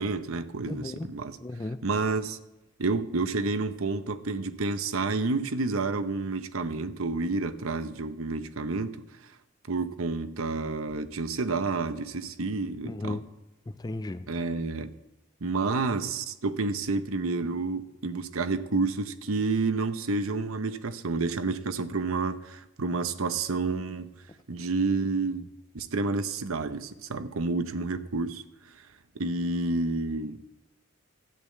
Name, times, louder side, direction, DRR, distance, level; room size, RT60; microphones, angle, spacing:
voice 1, 0.0-1.4 1.8-2.4 2.8-9.0 9.7-13.2 14.3-14.9 15.4-24.1 24.5-25.5 25.7-28.4 29.2-30.4, right 3 dB, 75° right, 0.8 m, -29 dB
voice 2, 0.7-1.1 1.4-1.8 12.8-13.2 13.8-14.2, left 2 dB, 20° left, 0.4 m, -34 dB
12.5 x 8.5 x 8.4 m
head